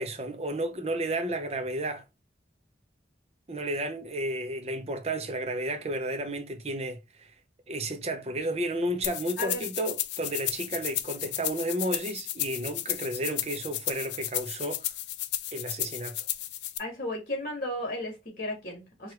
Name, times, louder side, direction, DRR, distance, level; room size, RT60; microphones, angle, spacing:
voice 1, 0.0-2.0 3.5-7.3 7.7-14.9 15.5-16.2, right 1 dB, 35° right, 0.6 m, -32 dB
sound 1, 9.0-16.8, left 13 dB, 65° left, 0.3 m, -33 dB
voice 2, 16.8-19.1, left 1 dB, 50° left, 1.7 m, -34 dB
4.6 x 2.5 x 3.0 m
head